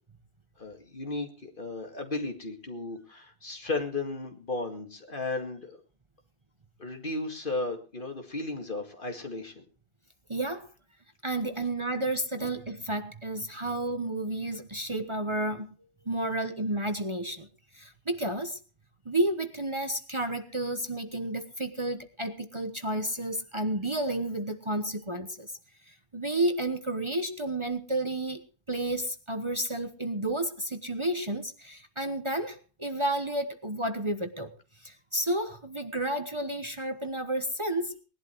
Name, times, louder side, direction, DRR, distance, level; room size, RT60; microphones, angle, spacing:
voice 1, 0.6-5.8 6.8-9.6 12.4-12.5, left 2 dB, 50° left, 4 dB, 2.5 m, -35 dB
voice 2, 10.3-10.7 11.2-15.7 16.0-17.5 17.7-18.6 19.0-25.5 25.9-28.4 28.7-34.5 34.8-38.0, right 1 dB, 30° right, 8 dB, 1.1 m, -31 dB
19.5 x 11.5 x 4.6 m, 0.37 s
omnidirectional pair, 1.1 m